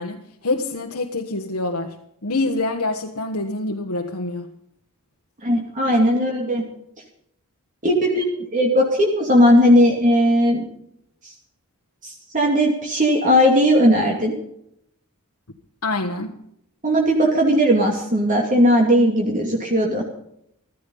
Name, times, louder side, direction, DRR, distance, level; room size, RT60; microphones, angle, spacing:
voice 1, 0.0-2.0 2.2-4.5 15.8-16.4, left 2 dB, 90° left, 3 dB, 1.4 m, -26 dB
voice 2, 5.4-6.6 7.8-8.2 8.5-10.7 12.0-14.3 16.8-20.0, equal, 35° right, 0 dB, 2.5 m, -17 dB
15.5 x 14.0 x 5.5 m, 0.74 s
head